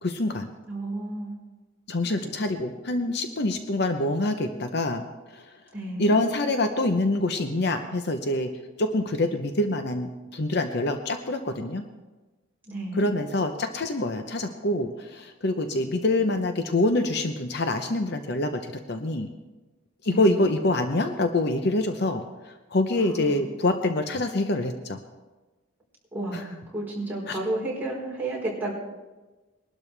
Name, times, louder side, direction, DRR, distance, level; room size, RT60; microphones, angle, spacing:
voice 1, 0.0-0.5 1.9-5.0 5.3-5.6 6.0-8.5 8.8-11.8 12.9-19.3 20.0-25.0 26.3-26.5 27.3-27.4, left 2 dB, 55° left, 7 dB, 0.8 m, -26 dB
voice 2, 0.7-1.3 5.7-6.1 12.7-13.0 20.1-20.4 23.0-23.4 26.1-28.7, right 2 dB, 10° right, -6 dB, 4.2 m, -32 dB
21.5 x 12.0 x 3.4 m, 1.2 s
head